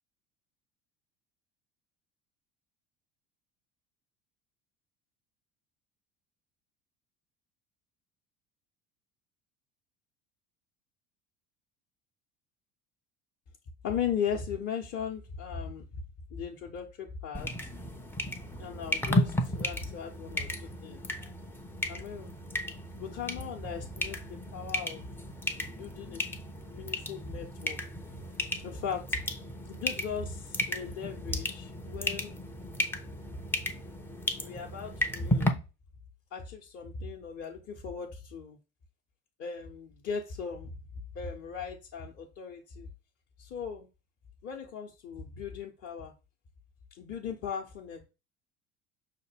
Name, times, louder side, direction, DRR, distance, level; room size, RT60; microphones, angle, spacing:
voice 1, 13.8-15.9 16.3-17.7 18.6-20.5 20.8-21.0 21.9-22.3 23.0-24.2 24.5-25.1 25.6-26.2 26.7-27.8 28.6-29.2 29.7-32.4 34.4-35.6 36.3-38.6 39.4-40.7 41.1-42.9 43.4-43.9 44.4-46.1 47.0-48.0, left 7 dB, 35° left, -1 dB, 0.8 m, -37 dB
sound 1, 17.3-35.5, left 1 dB, 5° left, 0.4 m, -34 dB
5.6 x 2.2 x 3.3 m, 0.29 s
figure-of-eight pair, 65°, 40 cm